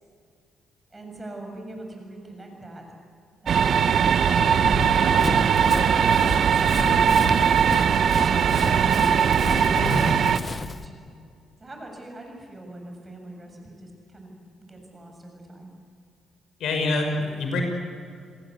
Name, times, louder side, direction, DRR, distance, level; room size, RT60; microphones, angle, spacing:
voice 1, 0.9-2.8 3.4-5.1 6.5-7.2 9.4-11.1 11.6-15.7, right 1 dB, 25° right, 2 dB, 7.5 m, -42 dB
sound 1, 3.5-10.4, right 7 dB, 60° right, 0.9 m, -20 dB
Run, 4.6-10.9, left 4 dB, 30° left, 0.9 m, -33 dB
voice 2, 9.7-10.1 16.6-17.6, left 2 dB, 75° left, 4 dB, 5.8 m, -26 dB
30.0 x 19.0 x 8.4 m, 2.3 s
cardioid pair, 90°, 0 cm